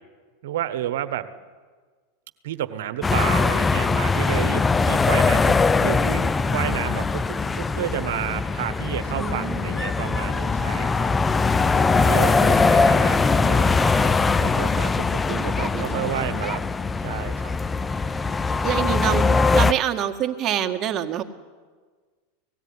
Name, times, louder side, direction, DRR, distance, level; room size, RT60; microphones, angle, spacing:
voice 1, 0.4-1.3 2.4-11.1 12.0-16.6 17.0-17.5, right 12 dB, 70° right, 12 dB, 1.3 m, -31 dB
sound 1, 3.0-19.7, left 4 dB, 15° left, 0.5 m, -21 dB
voice 2, 9.1-9.7 12.0-12.9 15.3-16.2 18.6-19.3 19.5-21.2, right 10 dB, 35° right, 4 dB, 1.8 m, -27 dB
18.0 x 16.0 x 9.8 m, 1.5 s
hypercardioid pair, 100°, 0 cm